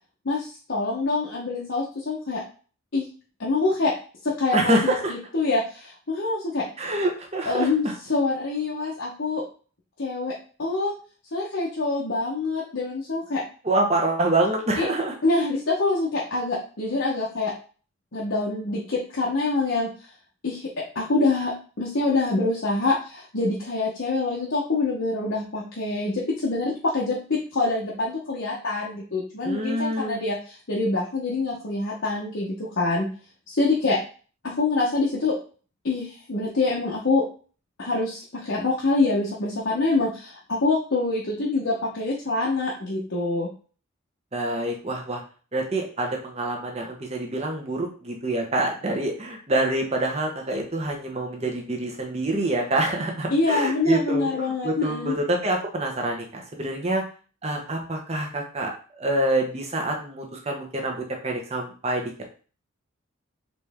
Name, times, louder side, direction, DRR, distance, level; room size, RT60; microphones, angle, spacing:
voice 1, 0.2-2.4 2.9-3.1 3.4-3.9 4.2-6.6 7.5-9.4 10.0-10.3 10.6-10.9 11.3-13.4 14.8-14.9 15.2-17.5 18.1-19.9 20.4-20.6 20.9-21.5 21.8-33.1 33.5-34.0 34.4-35.4 35.8-37.2 37.8-43.5 53.3-55.2, left 3 dB, 60° left, -5 dB, 0.9 m, -25 dB
voice 2, 4.5-5.1 6.8-7.7 13.6-15.1 29.4-30.2 44.3-45.2 45.5-57.0 57.4-58.7 59.0-62.2, right 1 dB, 30° right, 1 dB, 0.9 m, -26 dB
4.2 x 3.3 x 3.5 m, 0.39 s
head